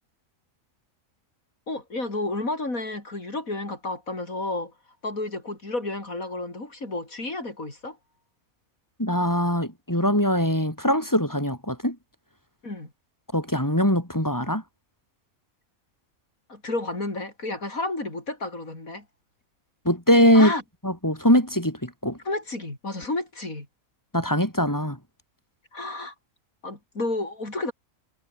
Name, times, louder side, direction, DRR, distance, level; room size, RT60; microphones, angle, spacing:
voice 1, 1.7-4.7 5.0-8.0 12.6-12.9 16.5-19.1 20.3-20.6 22.3-23.7 25.7-26.1 26.6-27.7, left 2 dB, 90° left, 6.0 m, -31 dB
voice 2, 9.0-12.0 13.3-14.6 19.8-20.5 20.8-22.2 24.1-25.0, equal, 15° left, 6.5 m, -22 dB
omnidirectional pair, 1.4 m